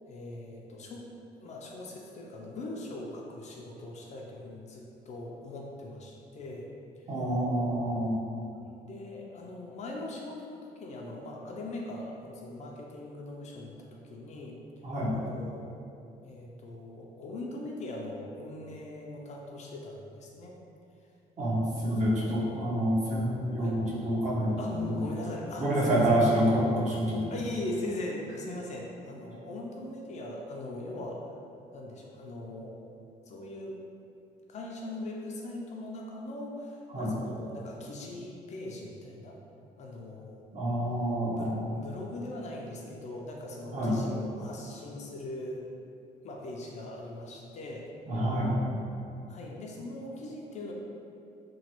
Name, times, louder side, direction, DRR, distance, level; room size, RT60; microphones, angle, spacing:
voice 1, 0.1-1.0 1.4-6.7 8.6-14.6 15.1-15.8 16.2-20.5 23.6-23.8 24.6-26.6 27.3-31.3 31.7-32.8 33.3-33.8 34.5-39.4 39.8-40.5 41.3-45.6 46.2-47.9 49.3-50.7, left 1 dB, 45° left, -1 dB, 0.4 m, -40 dB
voice 2, 7.1-8.2 14.8-15.1 21.4-25.0 25.6-27.3 36.9-37.1 40.5-41.6 43.7-44.0 48.1-48.6, equal, 45° right, -6 dB, 0.8 m, -27 dB
3.0 x 2.2 x 2.8 m, 2.6 s
cardioid pair, 110°, 17 cm